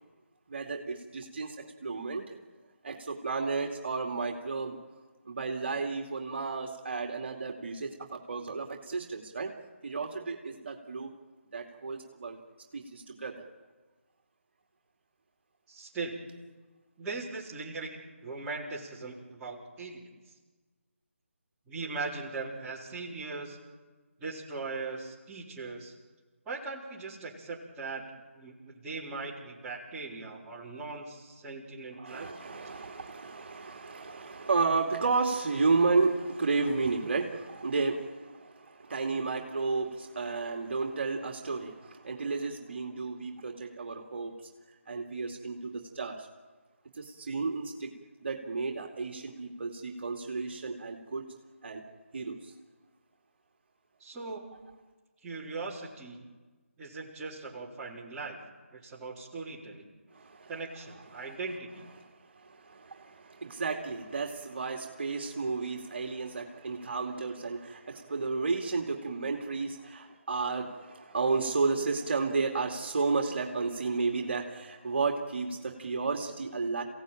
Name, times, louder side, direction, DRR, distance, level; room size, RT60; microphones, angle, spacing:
voice 1, 0.5-2.4 2.8-4.8 5.3-9.5 9.8-11.1 11.5-12.4 12.7-13.5 31.9-44.4 44.9-46.3 47.0-47.9 48.2-51.3 51.6-51.8 52.1-52.5 60.1-60.5 61.1-61.4 62.0-76.8, right 4 dB, 50° right, 2 dB, 2.5 m, -32 dB
voice 2, 15.7-16.5 17.0-20.1 21.7-23.6 24.2-25.9 26.5-28.0 28.3-32.6 54.0-54.6 55.2-56.2 56.8-58.4 58.7-59.9 60.5-61.9, right 3 dB, 10° right, -6 dB, 4.0 m, -39 dB
29.0 x 17.0 x 9.1 m, 1.3 s
figure-of-eight pair, 165°, 8 cm